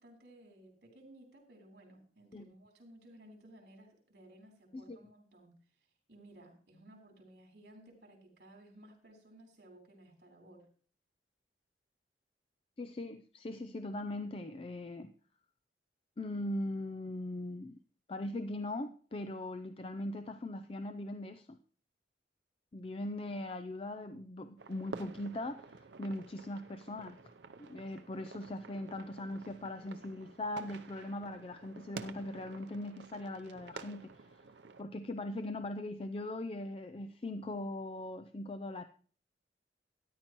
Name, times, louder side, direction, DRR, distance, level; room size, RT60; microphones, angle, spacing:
voice 1, 0.0-5.5 6.1-10.7, right 1 dB, 65° right, 1 dB, 3.5 m, -57 dB
voice 2, 12.8-15.1 16.2-17.8 18.1-21.6 22.7-25.7 26.0-27.2 27.6-34.1 34.8-38.8, left 1 dB, 30° left, 10 dB, 0.4 m, -40 dB
sound 1, 24.6-34.8, right 4 dB, 80° right, 0.6 m, -50 dB
13.0 x 10.0 x 3.0 m, 0.43 s
head